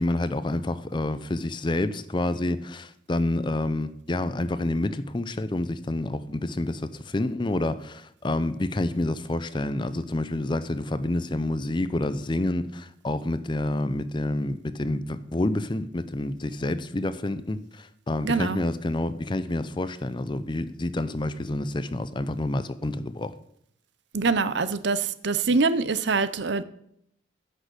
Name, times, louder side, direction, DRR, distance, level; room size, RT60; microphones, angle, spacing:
voice 1, 0.0-23.3, left 1 dB, 25° left, 0.5 m, -28 dB
voice 2, 18.2-18.6 24.1-26.6, right 4 dB, 60° right, 0.7 m, -24 dB
10.0 x 6.5 x 7.8 m
head